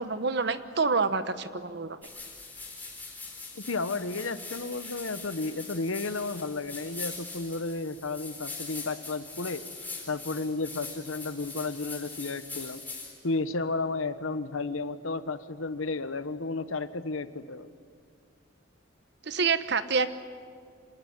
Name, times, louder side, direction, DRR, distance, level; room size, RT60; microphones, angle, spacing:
voice 1, 0.0-2.0 19.2-20.2, right 4 dB, 55° right, 12 dB, 1.1 m, -27 dB
sound 1, 2.0-13.1, left 4 dB, 10° left, 4.1 m, -42 dB
voice 2, 3.5-9.6 10.1-12.8 13.2-17.7, left 3 dB, 85° left, 13 dB, 1.2 m, -33 dB
26.5 x 19.0 x 10.0 m, 2.2 s
head